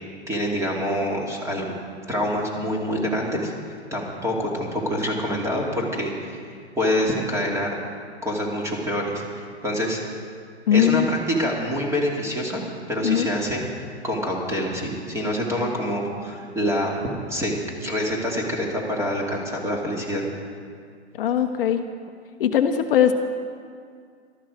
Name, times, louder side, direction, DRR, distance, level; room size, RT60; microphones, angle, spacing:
voice 1, 0.3-1.7 2.1-3.5 3.9-6.4 6.8-7.8 8.2-10.0 10.7-12.6 12.9-13.6 14.0-17.0 17.3-17.5 17.8-20.2, equal, 10° right, -1 dB, 2.6 m, -26 dB
voice 2, 10.7-11.1 13.0-13.3 21.2-21.8 22.4-23.1, left 9 dB, 55° left, 6 dB, 1.0 m, -20 dB
18.5 x 13.0 x 5.0 m, 2.2 s
hypercardioid pair, 125°, 33 cm